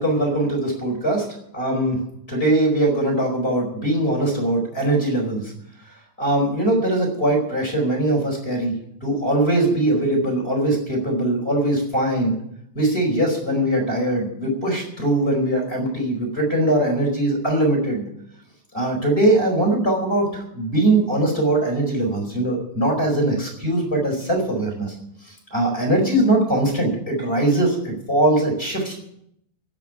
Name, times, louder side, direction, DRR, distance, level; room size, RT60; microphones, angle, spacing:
voice 1, 0.0-1.3 1.5-2.0 2.3-5.4 6.2-8.7 9.0-12.3 12.7-18.0 18.7-24.9 25.5-29.0, right 1 dB, 15° left, 1 dB, 4.7 m, -21 dB
16.0 x 6.9 x 9.6 m, 0.75 s
omnidirectional pair, 3.9 m